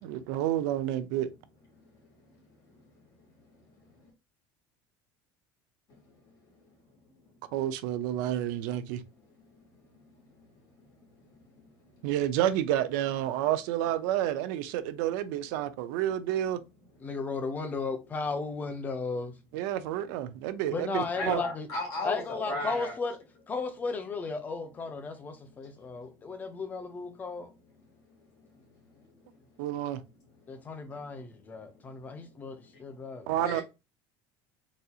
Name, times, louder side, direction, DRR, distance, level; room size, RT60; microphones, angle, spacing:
voice 1, 0.0-1.3 7.5-9.0 12.0-16.6 19.5-21.4 29.6-30.0 33.3-33.6, right 12 dB, 75° right, 0.5 m, -29 dB
voice 2, 17.0-19.3 20.7-21.7 22.0-23.2 23.5-27.5 30.5-33.3, left 4 dB, 15° left, 0.5 m, -35 dB
voice 3, 21.1-22.9 33.4-33.6, left 2 dB, 40° left, 1.6 m, -34 dB
4.0 x 2.7 x 2.3 m
cardioid pair, 175°, 10 cm